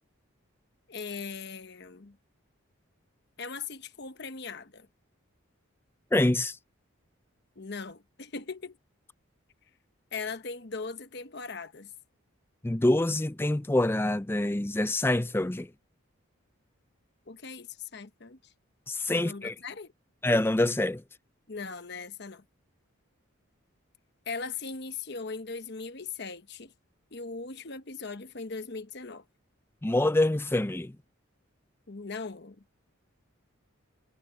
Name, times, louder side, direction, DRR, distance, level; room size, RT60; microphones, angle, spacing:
voice 1, 0.9-2.2 3.4-4.9 7.6-8.8 10.1-11.9 17.3-18.5 19.1-19.9 21.5-22.4 24.3-26.7 27.1-29.2 31.9-32.6, left 4 dB, 50° left, 1.0 m, -39 dB
voice 2, 6.1-6.6 12.6-15.7 18.9-19.5 20.2-21.0 29.8-30.9, left 1 dB, 10° left, 0.4 m, -26 dB
head